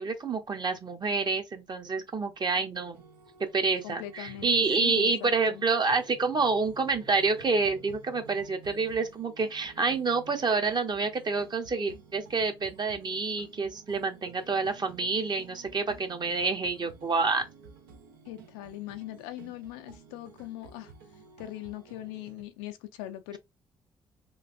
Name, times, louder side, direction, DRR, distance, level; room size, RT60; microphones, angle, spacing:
voice 1, 0.0-3.0 3.4-17.4, right 4 dB, 35° right, 0.8 m, -28 dB
sound 1, 2.9-22.4, right 5 dB, 80° right, 0.7 m, -52 dB
voice 2, 3.8-4.5 4.8-5.6 18.3-20.9 21.4-23.4, left 14 dB, 80° left, 0.4 m, -41 dB
3.1 x 2.5 x 2.5 m
hypercardioid pair, 45°, 12 cm